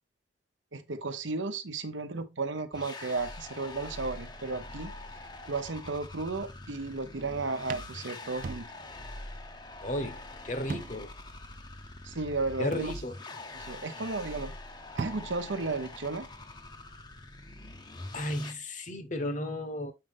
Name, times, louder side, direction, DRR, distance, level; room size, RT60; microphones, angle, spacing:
voice 1, 0.7-4.9 5.5-8.6 12.0-12.9 13.5-14.5 14.9-16.3, right 3 dB, 80° right, 0.9 m, -34 dB
sound 1, 2.7-18.5, left 2 dB, 20° left, 0.7 m, -44 dB
sound 2, 6.9-7.2 7.7-9.1 9.4-9.5 10.7-11.2 11.6-11.7 12.7-13.5 14.6-14.7 15.0-15.6, right 4 dB, 45° right, 0.3 m, -40 dB
voice 2, 9.8-11.1 12.6-13.2 18.1-19.9, left 1 dB, 40° left, 1.0 m, -34 dB
7.6 x 5.2 x 3.5 m
head